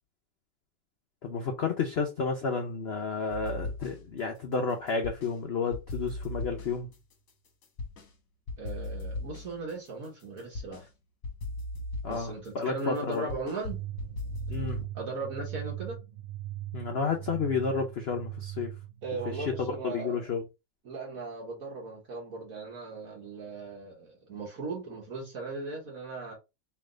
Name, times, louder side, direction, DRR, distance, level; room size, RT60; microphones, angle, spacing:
voice 1, 1.2-6.9 12.0-13.2 14.5-14.8 16.7-18.7 19.4-19.5 19.8-20.4, left 5 dB, 85° left, 0.5 m, -31 dB
sound 1, 3.3-4.2 4.5-5.4 5.7-8.1 8.5-10.9 11.2-14.9, left 2 dB, 55° left, 1.2 m, -38 dB
voice 2, 8.6-10.9 12.1-13.8 14.9-16.0 19.0-20.2 20.8-26.3, right 3 dB, 55° right, 1.4 m, -38 dB
sound 2, 13.7-19.9, right 14 dB, 80° right, 1.4 m, -40 dB
3.3 x 3.1 x 3.7 m
omnidirectional pair, 2.0 m